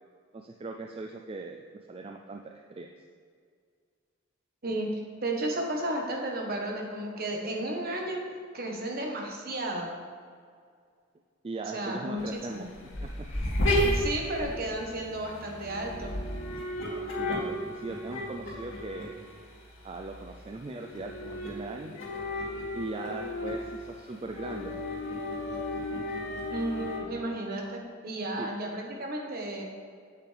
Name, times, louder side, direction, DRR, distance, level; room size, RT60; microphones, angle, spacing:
voice 1, 0.3-1.6 1.9-2.9 11.4-12.7 13.0-13.3 17.1-19.1 19.8-21.9 22.7-24.7 28.4-28.5, right 3 dB, 30° right, 2 dB, 0.3 m, -39 dB
voice 2, 5.2-8.2 8.5-9.9 11.7-12.7 13.8-16.1 23.1-23.3 26.5-29.6, right 1 dB, 50° right, 0 dB, 1.2 m, -33 dB
sound 1, 12.2-27.0, left 1 dB, 70° left, 2.2 m, -33 dB
8.5 x 8.2 x 3.4 m, 2.1 s
head